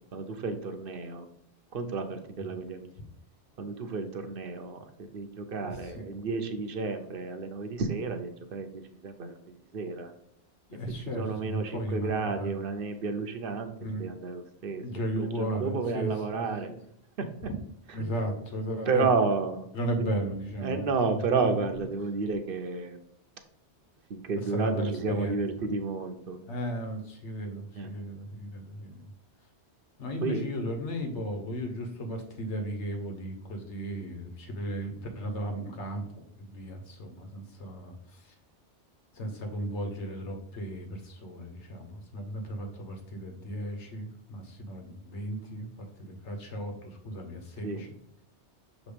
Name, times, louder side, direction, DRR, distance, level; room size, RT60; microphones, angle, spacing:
voice 1, 0.1-1.3 1.7-2.9 3.6-4.9 5.1-10.1 10.9-13.7 14.0-14.8 15.2-16.7 17.2-17.3 18.9-19.7 20.0-20.1 20.6-23.0 24.1-26.4 27.7-27.9 30.2-30.5 47.6-47.8, right 4 dB, 55° right, 7 dB, 0.9 m, -31 dB
voice 2, 10.7-12.6 13.8-14.1 14.8-16.8 17.9-19.1 19.7-20.9 24.5-25.4 26.5-29.1 30.0-38.3 39.1-47.9, equal, 75° left, 4 dB, 1.4 m, -35 dB
6.3 x 3.1 x 5.0 m, 0.74 s
omnidirectional pair, 1.2 m